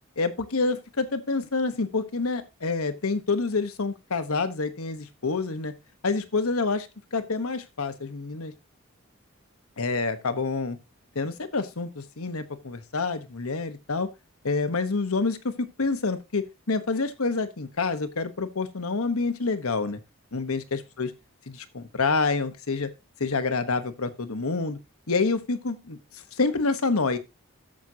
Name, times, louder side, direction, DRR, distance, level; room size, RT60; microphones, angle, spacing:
voice 1, 0.2-5.7 6.0-8.5 9.8-10.8 11.1-14.1 14.4-20.0 20.3-21.1 21.5-22.9 23.2-24.8 25.1-27.2, left 4 dB, 80° left, 10 dB, 1.1 m, -27 dB
14.0 x 6.1 x 2.8 m, 0.24 s
head